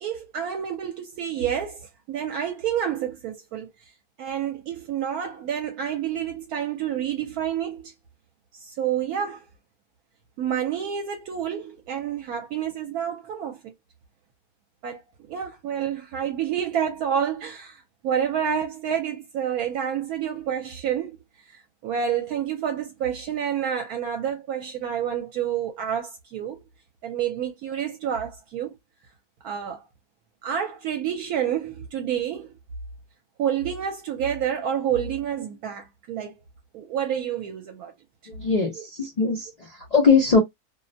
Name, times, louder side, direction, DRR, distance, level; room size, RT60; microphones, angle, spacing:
voice 1, 0.0-3.7 4.2-7.9 8.5-9.4 10.4-13.7 14.8-15.0 15.3-21.2 21.5-26.6 27.0-28.7 29.4-29.8 30.4-32.6 33.4-36.3 36.7-37.9 38.8-38.9, right 9 dB, 75° right, 1.0 m, -29 dB
voice 2, 38.3-40.4, left 4 dB, 80° left, 0.3 m, -21 dB
2.6 x 2.1 x 2.5 m
omnidirectional pair, 1.6 m